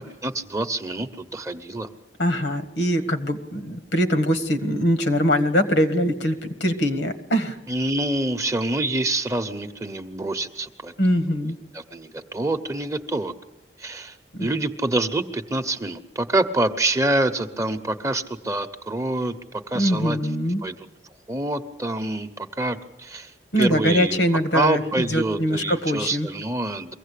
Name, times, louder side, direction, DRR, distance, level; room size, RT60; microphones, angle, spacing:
voice 1, 0.0-1.9 7.7-10.9 11.7-13.3 13.8-19.4 19.7-20.2 20.6-20.8 21.3-24.2 24.5-26.9, right 2 dB, 15° right, 8 dB, 0.9 m, -26 dB
voice 2, 2.2-7.6 11.0-11.6 14.3-14.5 19.7-20.6 23.5-26.3, equal, 80° left, 8 dB, 1.7 m, -22 dB
23.5 x 16.0 x 8.3 m, 0.97 s
head